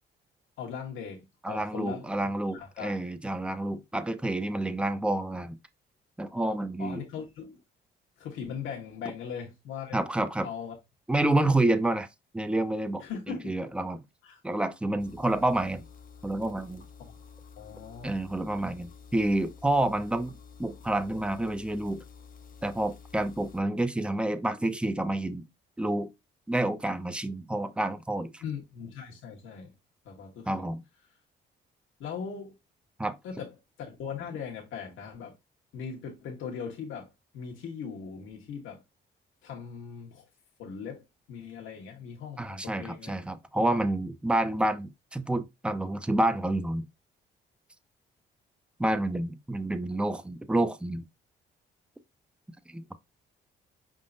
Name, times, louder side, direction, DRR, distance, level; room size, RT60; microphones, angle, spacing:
voice 1, 0.6-2.1 2.5-3.0 6.8-7.6 8.2-10.0 10.4-10.7 13.0-13.5 14.2-14.4 17.0-17.2 17.6-18.2 28.4-29.7 30.0-30.7 32.0-32.6 33.2-35.3 35.7-38.8 39.4-40.3 40.6-43.2, left 6 dB, 85° left, 1.2 m, -39 dB
voice 2, 1.4-5.6 6.2-7.0 9.9-10.5 11.1-12.1 12.3-13.0 13.4-14.0 14.4-15.8 16.2-16.8 18.0-20.3 20.6-22.0 22.6-25.4 25.8-26.1 26.5-28.4 30.5-30.8 33.0-33.2 42.4-46.8 48.8-51.0 52.7-52.8, right 1 dB, 5° right, 0.5 m, -28 dB
sound 1, 15.0-23.6, left 6 dB, 45° left, 0.6 m, -50 dB
4.9 x 3.7 x 2.6 m
cardioid pair, 90°, 20 cm